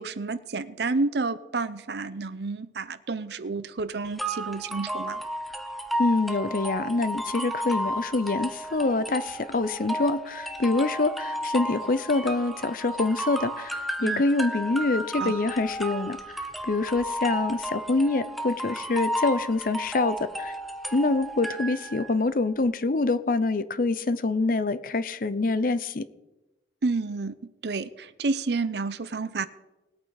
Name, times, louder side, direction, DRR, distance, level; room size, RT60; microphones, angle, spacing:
voice 1, 0.0-5.2 14.0-14.2 15.2-15.3 26.8-27.3 27.6-29.5, right 3 dB, 70° right, 14 dB, 0.7 m, -30 dB
sound 1, 4.2-22.1, right 1 dB, ahead, 0.7 m, -33 dB
voice 2, 6.0-16.2 16.7-20.5 20.9-26.0, left 3 dB, 50° left, 14 dB, 0.6 m, -25 dB
20.0 x 8.7 x 4.0 m, 1.0 s
head